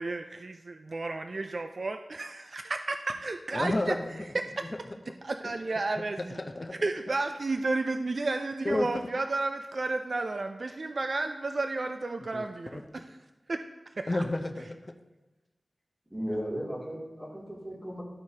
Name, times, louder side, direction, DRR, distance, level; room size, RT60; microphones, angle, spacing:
voice 1, 0.0-4.0 4.3-4.7 5.2-6.4 6.8-13.1 13.5-13.6 14.0-14.2, right 3 dB, 50° right, 7 dB, 0.3 m, -32 dB
voice 2, 3.5-4.3 4.7-4.8 6.3-6.7 8.6-8.9 12.3-12.5 12.7-12.8 14.1-14.9, left 2 dB, 35° left, 4 dB, 0.6 m, -31 dB
voice 3, 16.1-18.0, equal, 10° right, -6 dB, 2.6 m, -35 dB
13.0 x 4.6 x 2.8 m, 1.1 s
wide cardioid pair, 85°, 0 cm